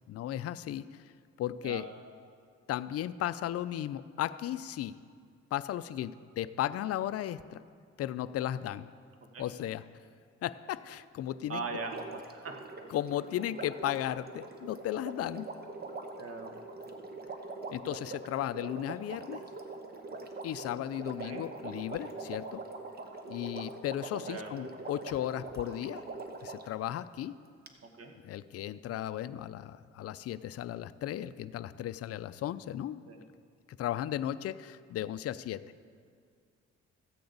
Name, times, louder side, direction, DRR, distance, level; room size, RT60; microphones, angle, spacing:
voice 1, 0.1-1.0 1.4-1.9 2.7-5.0 5.5-7.6 8.0-8.9 9.4-9.8 10.4-11.6 12.9-15.5 17.7-19.4 20.4-22.6 23.3-26.0 26.4-27.3 28.2-33.0 33.7-35.6, left 12 dB, 55° left, 14 dB, 0.4 m, -35 dB
voice 2, 11.5-12.5 16.2-16.5 21.2-21.4 24.3-24.5 27.8-28.1 33.1-33.2, right 3 dB, 50° right, 3 dB, 1.4 m, -40 dB
Water, 11.7-26.7 27.7-27.8, right 3 dB, 30° right, 1.0 m, -43 dB
14.5 x 8.5 x 3.9 m, 2.2 s
cardioid pair, 90°, 30 cm